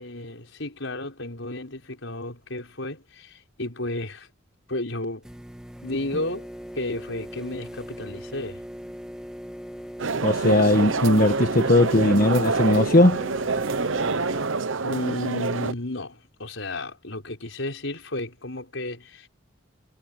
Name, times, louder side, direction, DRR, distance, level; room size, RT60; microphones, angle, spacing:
voice 1, 0.0-4.3 4.7-5.2 5.8-6.5 6.7-8.6 14.8-19.3, left 2 dB, 70° left, 5.5 m, -33 dB
sound 1, 5.2-14.4, equal, 5° right, 2.3 m, -39 dB
sound 2, 10.0-15.7, right 4 dB, 75° right, 0.9 m, -26 dB
voice 2, 10.2-13.2, left 1 dB, 45° left, 1.5 m, -19 dB
head